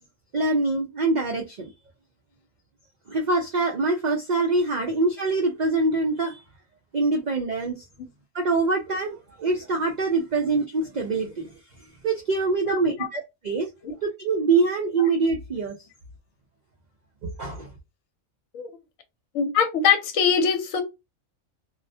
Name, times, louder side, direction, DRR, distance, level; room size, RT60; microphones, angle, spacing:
voice 1, 0.3-1.7 3.1-6.4 6.9-7.8 8.3-11.6 12.0-13.7 14.0-15.7 17.2-17.7, right 3 dB, 65° right, 0.4 m, -24 dB
voice 2, 19.3-20.8, left 7 dB, 75° left, 1.0 m, -22 dB
2.3 x 2.0 x 2.6 m
omnidirectional pair, 1.4 m